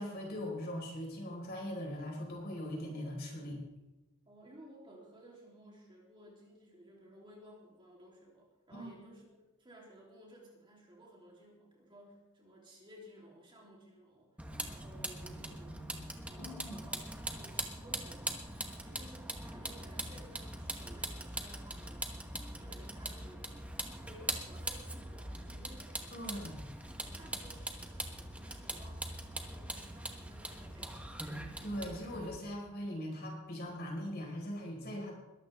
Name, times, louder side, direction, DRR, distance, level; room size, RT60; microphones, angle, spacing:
voice 1, 0.0-3.6 8.7-8.9 16.4-16.8 26.1-26.6 31.5-35.1, equal, 45° left, -1 dB, 4.7 m, -40 dB
voice 2, 4.2-15.9 16.2-18.4 18.8-23.5 23.9-26.6 27.0-31.2, right 1 dB, 20° right, -3 dB, 3.2 m, -57 dB
Vehicle, 14.4-32.4, right 1 dB, 5° right, 1.1 m, -42 dB
21.5 x 13.0 x 3.5 m, 1.0 s
head